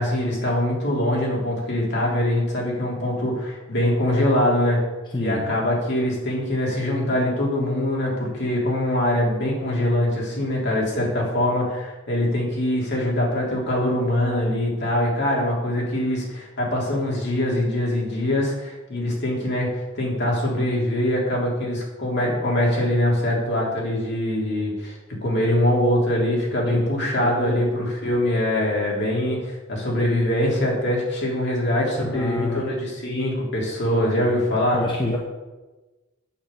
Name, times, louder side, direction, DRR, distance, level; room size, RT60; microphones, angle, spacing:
voice 1, 0.0-4.8 5.2-24.9 25.2-34.8, left 1 dB, 55° left, -3 dB, 3.1 m, -23 dB
voice 2, 5.1-5.4 26.7-26.9 27.2-27.6 32.0-32.6 34.7-35.2, left 2 dB, 25° left, -1 dB, 0.9 m, -27 dB
8.8 x 5.9 x 6.7 m, 1.2 s
head